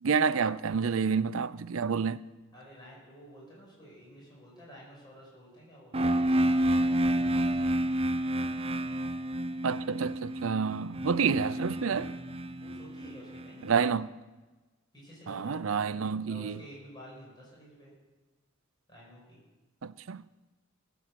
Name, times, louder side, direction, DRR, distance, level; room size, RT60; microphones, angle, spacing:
voice 1, 0.0-2.2 9.6-12.1 13.7-14.1 15.3-16.6 19.8-20.2, right 6 dB, 80° right, 0.5 m, -29 dB
voice 2, 2.5-6.2 11.4-12.2 12.6-13.9 14.9-16.0 16.3-17.9 18.9-19.4, equal, 20° left, 6.3 m, -51 dB
sound 1, 5.9-13.7, right 1 dB, 30° right, 0.6 m, -29 dB
18.0 x 8.3 x 7.6 m
head